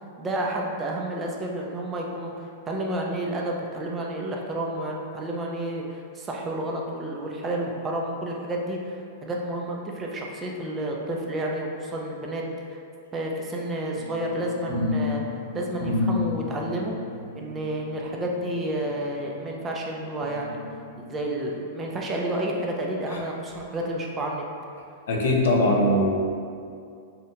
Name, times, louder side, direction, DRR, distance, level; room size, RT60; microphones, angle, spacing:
voice 1, 0.2-12.4 12.7-12.8 13.1-15.2 15.5-16.9 17.3-20.6 21.0-24.4, right 1 dB, 20° right, -1 dB, 0.3 m, -30 dB
sound 1, 13.9-19.7 20.2-21.3 21.8-21.9, left 3 dB, ahead, 0.9 m, -32 dB
voice 2, 25.1-26.2, left 1 dB, 75° left, 0 dB, 0.4 m, -21 dB
2.6 x 2.1 x 2.8 m, 2.4 s
hypercardioid pair, 130°, 0 cm